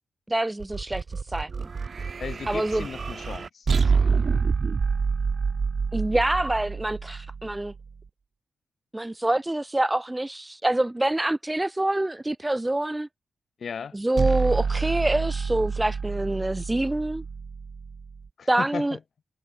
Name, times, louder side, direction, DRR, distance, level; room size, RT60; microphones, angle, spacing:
voice 1, 0.3-1.0 1.3-1.7 2.5-2.8 5.9-7.7 8.9-13.1 13.9-17.2 18.5-19.0, right 1 dB, 10° right, 0.5 m, -26 dB
sound 1, 0.6-7.9 14.2-18.3, right 5 dB, 45° right, 4.8 m, -27 dB
voice 2, 2.2-3.7 13.6-14.0 18.4-19.0, left 6 dB, 55° left, 3.4 m, -36 dB
wide cardioid pair, 125°, 0 cm